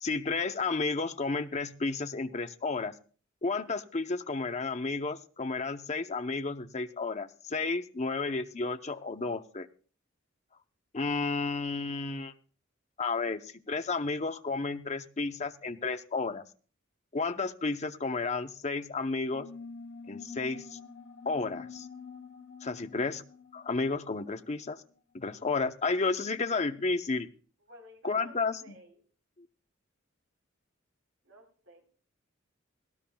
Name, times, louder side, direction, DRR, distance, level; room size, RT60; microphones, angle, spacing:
voice 1, 0.0-2.9 3.4-9.7 10.9-12.3 13.0-16.4 17.1-19.5 20.1-20.8 21.2-21.9 22.6-23.2 23.5-24.8 25.1-27.3 28.0-28.6 29.4-29.5, left 3 dB, 35° left, 7 dB, 0.8 m, -32 dB
sound 1, 19.3-24.5, left 5 dB, 65° left, 0.8 m, -47 dB
voice 2, 27.7-29.0 31.2-31.8, equal, 80° right, 0 dB, 3.8 m, -54 dB
18.0 x 17.5 x 2.3 m, 0.40 s
head